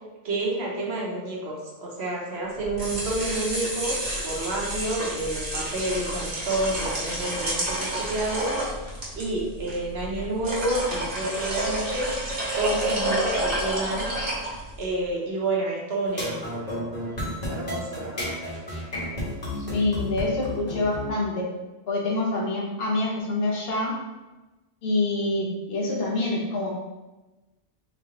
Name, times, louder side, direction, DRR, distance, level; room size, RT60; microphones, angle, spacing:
voice 1, 0.2-8.6 9.2-12.1 12.5-14.1 14.8-16.9 17.5-18.4, right 2 dB, 80° right, -2 dB, 1.2 m, -29 dB
sound 1, 2.6-14.9, right 1 dB, 60° right, 1.3 m, -30 dB
sound 2, 16.1-21.1, left 1 dB, 40° left, 1.3 m, -31 dB
voice 2, 19.7-21.5 21.9-23.9 24.8-26.7, left 2 dB, 70° left, -3 dB, 1.1 m, -26 dB
3.6 x 3.2 x 3.7 m, 1.1 s
omnidirectional pair, 1.1 m